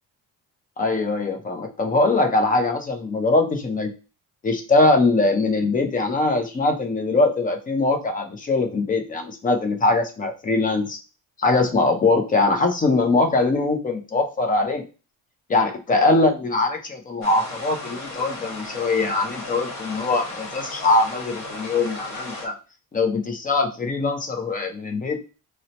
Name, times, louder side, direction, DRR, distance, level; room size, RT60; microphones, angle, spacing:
voice 1, 0.8-3.9 4.4-11.0 11.4-14.8 15.5-22.5 22.9-25.2, left 3 dB, 20° left, 4 dB, 0.5 m, -22 dB
sound 1, 17.2-22.5, left 2 dB, 45° left, 1.0 m, -35 dB
4.1 x 2.1 x 2.7 m, 0.33 s
cardioid pair, 145°, 39 cm